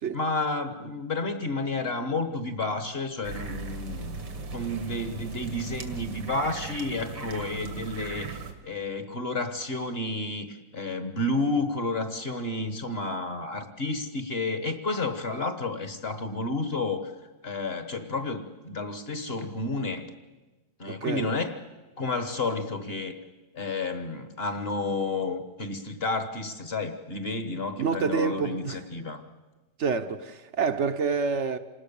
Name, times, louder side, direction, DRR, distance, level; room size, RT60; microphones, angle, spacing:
voice 1, 0.1-4.2 4.5-8.4 8.6-17.1 17.4-20.1 20.8-21.6 22.0-23.2 23.5-29.2, left 2 dB, 35° left, 1.4 m, -31 dB
sound 1, 3.2-8.5, right 4 dB, 85° right, 2.6 m, -38 dB
voice 2, 20.9-21.3 27.8-28.8 29.8-31.6, right 5 dB, 50° right, 1.0 m, -28 dB
27.5 x 19.0 x 7.0 m
omnidirectional pair, 2.0 m